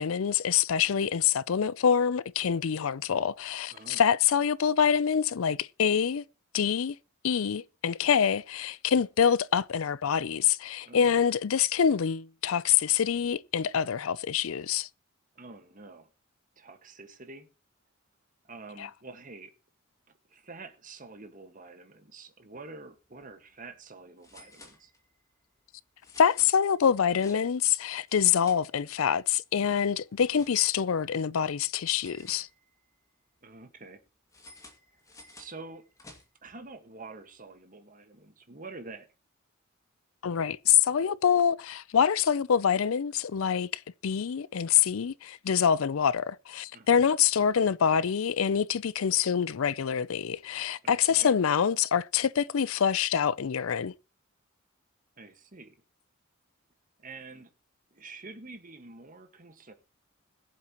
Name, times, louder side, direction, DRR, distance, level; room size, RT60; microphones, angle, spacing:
voice 1, 0.0-6.2 6.5-7.0 7.2-14.9 26.2-32.5 40.2-53.9, left 8 dB, 85° left, 0.5 m, -26 dB
voice 2, 3.7-4.0 10.8-11.2 15.3-16.1 16.6-17.5 18.4-19.5 20.3-24.9 33.4-34.0 35.4-35.8 36.4-39.1 46.7-47.0 50.8-51.3 55.2-55.8 57.0-57.5 57.9-59.7, right 3 dB, 40° right, 1.6 m, -47 dB
sound 1, 23.0-23.2 23.5-23.6 24.2-25.3 26.0-27.7 28.0-29.2 29.5-30.9 31.9-33.0 34.3-36.5, left 2 dB, 15° left, 2.2 m, -54 dB
21.5 x 7.5 x 3.0 m
head